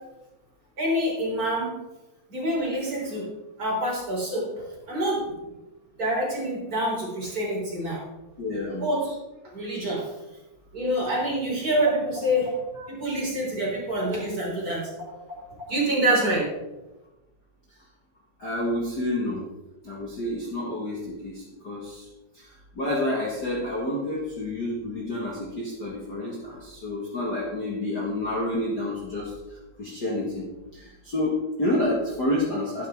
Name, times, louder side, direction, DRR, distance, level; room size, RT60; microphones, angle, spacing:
voice 1, 0.8-1.7 2.3-3.3 3.6-5.4 6.0-8.0 8.7-9.2 9.5-10.1 10.7-14.8 15.1-16.5, right 1 dB, 30° right, -5 dB, 4.0 m, -27 dB
voice 2, 8.4-8.8 12.8-12.9 18.4-19.4 19.8-22.1 22.3-29.3 29.8-30.4 30.7-32.9, left 1 dB, 40° left, -4 dB, 2.0 m, -29 dB
12.0 x 10.5 x 3.6 m, 1.0 s
omnidirectional pair, 3.4 m